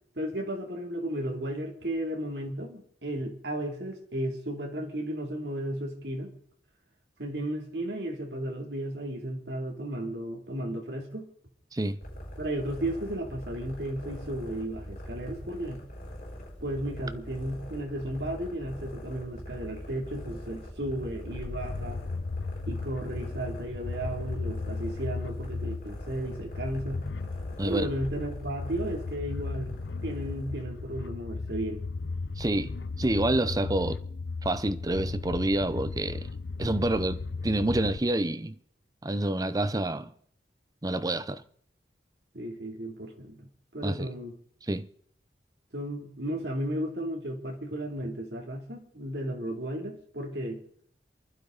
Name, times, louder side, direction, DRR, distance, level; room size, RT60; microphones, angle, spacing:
voice 1, 0.1-6.3 7.2-11.3 12.4-15.8 16.6-22.0 22.7-27.0 27.6-29.8 30.0-31.9 42.3-44.4 45.7-50.6, right 1 dB, 75° right, 2.9 m, -34 dB
sound 1, 12.0-31.2, equal, 50° left, 6.0 m, -43 dB
sound 2, 21.3-38.0, left 3 dB, 85° left, 0.6 m, -36 dB
voice 2, 32.4-32.7 33.0-34.0 34.4-36.2 36.6-38.6 39.0-40.1 40.8-41.4 43.8-44.1 44.7-44.9, right 1 dB, 20° right, 0.6 m, -28 dB
28.5 x 12.0 x 4.0 m
head